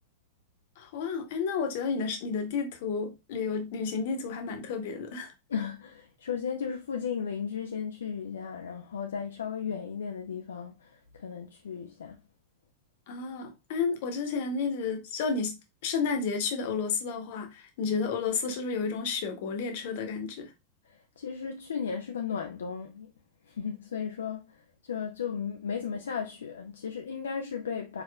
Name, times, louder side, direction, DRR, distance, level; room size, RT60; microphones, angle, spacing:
voice 1, 0.8-5.3 13.1-20.5, left 5 dB, 55° left, 1.1 m, -31 dB
voice 2, 5.5-12.2 20.9-23.1 23.5-28.0, left 7 dB, 70° left, 0.4 m, -35 dB
4.7 x 4.1 x 2.2 m
figure-of-eight pair, 90°, 0 cm